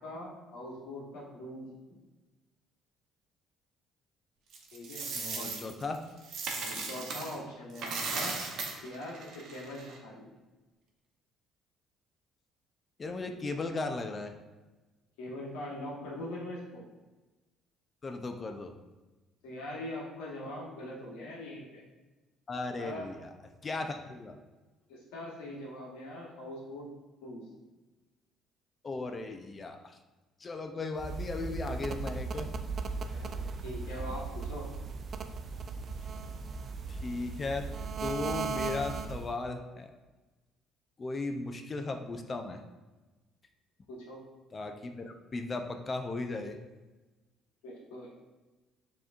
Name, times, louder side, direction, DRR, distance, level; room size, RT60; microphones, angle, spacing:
voice 1, 0.0-1.7 4.7-5.5 6.5-8.3 8.8-10.3 15.2-16.8 19.4-21.8 22.8-23.1 24.9-26.9 27.2-27.5 33.1-34.7 43.9-44.2 47.6-48.1, left 1 dB, 85° left, -3 dB, 1.2 m, -42 dB
Coin (dropping), 4.5-7.4 7.7-10.0, right 4 dB, 65° right, 0.8 m, -37 dB
voice 2, 5.1-6.0 13.0-14.3 18.0-18.7 22.5-23.3 23.6-24.4 28.8-30.0 30.4-32.5 36.9-37.7 38.0-39.9 41.0-42.6 44.5-46.6, left 3 dB, 35° left, 5 dB, 0.5 m, -36 dB
sound 1, 31.0-39.4, right 4 dB, 50° right, 0.4 m, -37 dB
6.8 x 3.0 x 2.4 m, 1.2 s
supercardioid pair, 65°, 0 cm